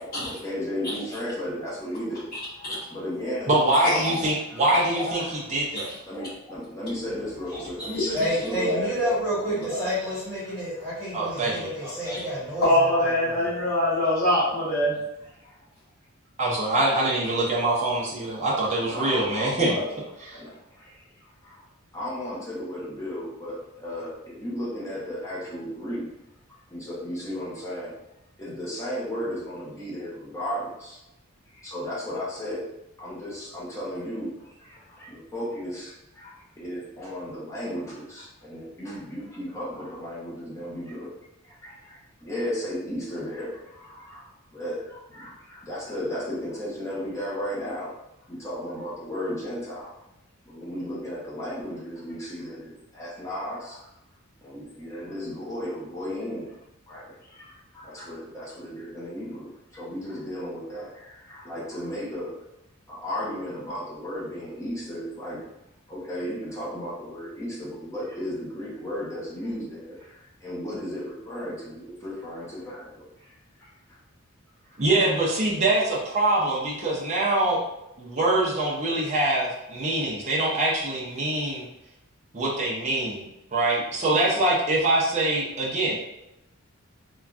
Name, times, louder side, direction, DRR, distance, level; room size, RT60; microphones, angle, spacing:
voice 1, 0.0-4.2 4.5-5.6 6.1-7.8 8.3-9.2 10.4-10.9 11.3-11.4 15.4-15.6 18.8-19.9 20.2-21.6 21.9-26.1 26.7-27.9 28.4-31.0 31.5-32.7 33.0-41.1 41.4-47.9 48.3-49.9 50.4-53.9 54.4-56.6 56.9-62.4 62.9-65.4 65.9-73.3 73.6-74.0 74.7-74.8, equal, 15° left, -7 dB, 0.8 m, -35 dB
voice 2, 3.5-5.2 5.5-5.9 11.1-11.7 16.4-19.8 74.8-77.6 78.0-81.7 82.3-86.0, right 2 dB, 30° right, -5 dB, 0.5 m, -24 dB
voice 3, 7.5-12.7 13.0-13.5, equal, 5° right, -11 dB, 1.2 m, -29 dB
voice 4, 12.6-15.0, left 1 dB, 45° left, -9 dB, 1.3 m, -23 dB
3.3 x 2.2 x 2.4 m, 0.88 s
head